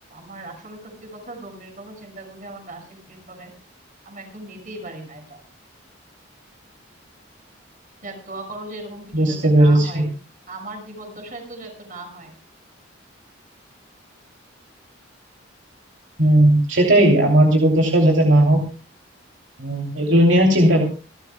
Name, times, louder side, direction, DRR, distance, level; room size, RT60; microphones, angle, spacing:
voice 1, 0.1-3.5 4.0-5.4 8.0-10.1 10.5-12.3, right 2 dB, 40° right, 4 dB, 6.0 m, -38 dB
voice 2, 9.1-10.0 16.2-18.6 19.6-20.8, right 1 dB, 65° right, 0 dB, 3.0 m, -16 dB
27.5 x 13.0 x 2.3 m, 0.34 s
head